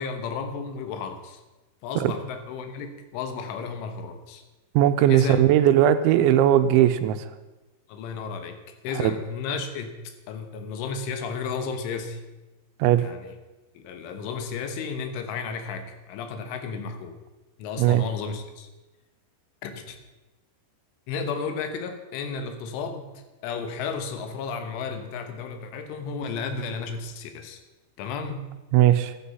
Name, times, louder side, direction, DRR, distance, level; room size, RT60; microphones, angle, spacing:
voice 1, 0.0-1.4 1.8-4.4 5.1-5.4 7.9-8.6 8.8-12.2 13.0-13.4 13.8-17.2 17.6-18.7 19.6-20.0 21.1-23.1 23.4-27.6 28.0-28.5, left 5 dB, 85° left, 7 dB, 3.7 m, -33 dB
voice 2, 4.7-7.3 9.0-9.1 12.8-13.0 17.8-18.0 28.7-29.1, right 11 dB, 80° right, 10 dB, 3.0 m, -19 dB
13.0 x 12.0 x 5.5 m, 1.1 s
omnidirectional pair, 5.5 m